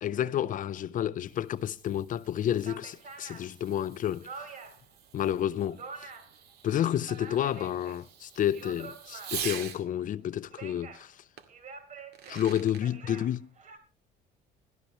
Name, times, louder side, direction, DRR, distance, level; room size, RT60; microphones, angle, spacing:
voice 1, 0.0-4.3 5.1-5.8 6.6-11.1 12.3-13.5, left 10 dB, 50° left, 0.6 m, -30 dB
Fireworks, 1.1-9.8 11.4-11.5 12.0-12.8, right 8 dB, 75° right, 2.3 m, -45 dB
sound 1, 2.1-2.2 2.6-4.9 5.3-6.4 6.7-8.0 8.4-9.6 10.3-11.1 11.5-13.8, right 5 dB, 50° right, 3.9 m, -47 dB
17.5 x 13.0 x 3.1 m
cardioid pair, 110°, 17 cm